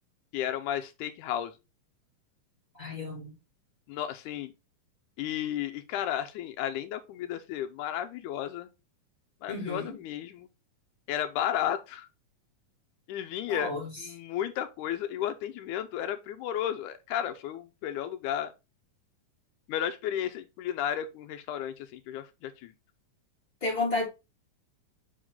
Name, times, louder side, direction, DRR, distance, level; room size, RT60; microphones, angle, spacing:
voice 1, 0.3-1.5 3.9-4.5 5.2-8.7 9.4-10.5 11.1-12.1 13.1-18.5 19.7-22.7, left 10 dB, 85° left, 2.1 m, -33 dB
voice 2, 2.7-3.3 9.5-10.0 13.5-14.0 23.6-24.0, left 2 dB, 10° left, 3.9 m, -32 dB
6.3 x 5.1 x 3.7 m
omnidirectional pair, 3.5 m